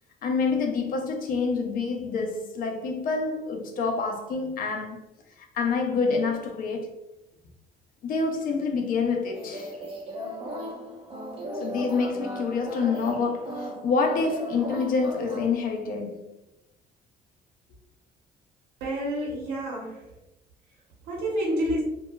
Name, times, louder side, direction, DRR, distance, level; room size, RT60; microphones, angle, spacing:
voice 1, 0.2-5.0 5.4-6.9 8.0-9.7 11.5-16.3, left 4 dB, 55° left, 0.6 m, -27 dB
sound 1, 9.3-15.4, equal, 35° right, 0.8 m, -36 dB
voice 2, 18.8-20.1 20.7-21.8, equal, 75° right, 0.8 m, -29 dB
2.7 x 2.3 x 2.2 m
cardioid pair, 110°, 17 cm